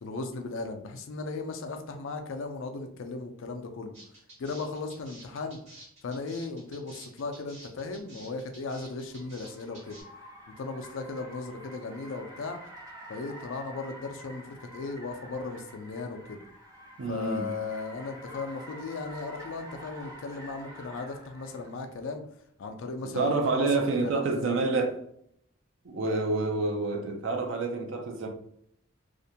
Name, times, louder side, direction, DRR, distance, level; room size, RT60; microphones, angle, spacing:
voice 1, 0.0-3.9 4.4-5.6 6.0-10.0 10.6-12.6 13.1-16.4 17.1-22.2 22.6-24.4, left 3 dB, 65° left, 5 dB, 0.4 m, -36 dB
sound 1, 3.9-10.0, right 1 dB, 30° right, 1.2 m, -50 dB
Car, 7.9-21.8, equal, 15° right, 0.6 m, -48 dB
voice 2, 17.0-17.5 23.0-25.0 25.8-28.3, right 3 dB, 60° right, 2 dB, 0.5 m, -28 dB
2.4 x 2.1 x 2.7 m, 0.70 s
head